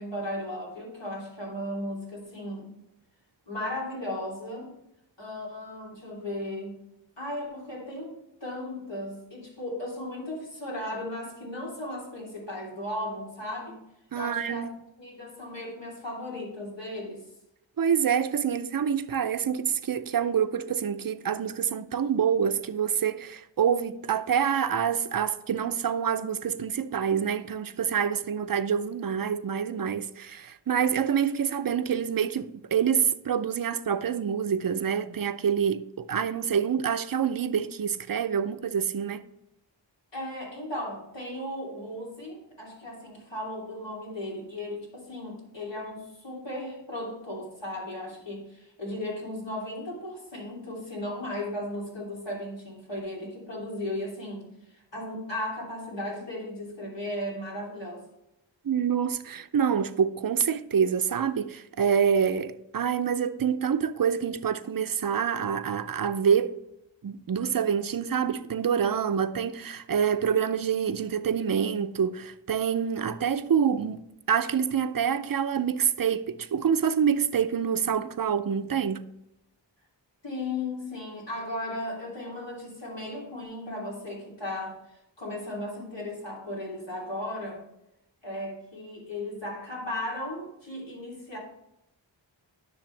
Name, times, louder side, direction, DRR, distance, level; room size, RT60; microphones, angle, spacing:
voice 1, 0.0-2.7 3.5-4.8 5.2-6.8 7.2-8.1 8.4-13.8 14.1-14.7 15.0-17.2 40.1-58.1 80.2-84.8 85.2-87.6 88.2-91.4, left 1 dB, 70° left, 3.0 m, -36 dB
voice 2, 14.1-14.7 17.8-39.2 58.6-66.6 67.0-74.0 74.3-79.1, right 7 dB, 50° right, 0.5 m, -26 dB
10.5 x 6.4 x 3.3 m
wide cardioid pair, 45°, 46 cm